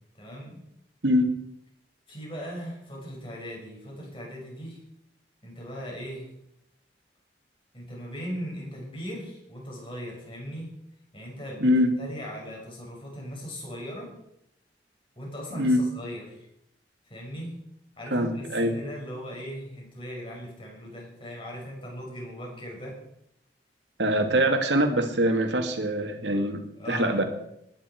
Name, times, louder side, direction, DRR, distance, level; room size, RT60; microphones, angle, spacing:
voice 1, 0.1-0.6 2.1-4.8 5.4-6.3 7.7-10.7 11.1-11.7 12.0-14.1 15.2-16.5 17.0-17.5 18.0-23.0 26.8-27.3, equal, 30° left, -2 dB, 5.9 m, -38 dB
voice 2, 11.6-11.9 15.5-15.8 18.1-18.7 24.0-26.6 26.9-27.2, equal, 75° right, 5 dB, 2.2 m, -23 dB
21.0 x 10.5 x 4.6 m, 0.78 s
head